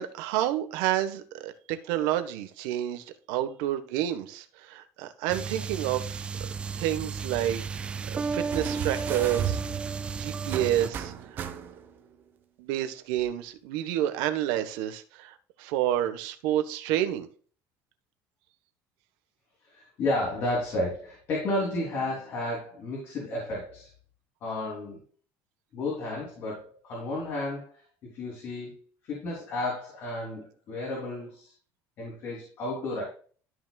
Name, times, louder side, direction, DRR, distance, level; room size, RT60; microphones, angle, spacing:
voice 1, 0.0-6.5 6.8-9.6 10.2-11.4 12.6-17.3, right 12 dB, 85° right, 9 dB, 1.3 m, -29 dB
sound 1, 5.3-10.9, right 5 dB, 15° right, 0.4 m, -33 dB
sound 2, 8.5-12.0 13.2-13.3, right 9 dB, 35° right, 1.1 m, -35 dB
voice 2, 19.6-23.9 24.4-25.0 25.7-28.8 29.0-31.5 32.0-33.0, left 2 dB, 40° left, -3 dB, 3.3 m, -32 dB
13.0 x 6.2 x 2.4 m, 0.42 s
cardioid pair, 175°, 6 cm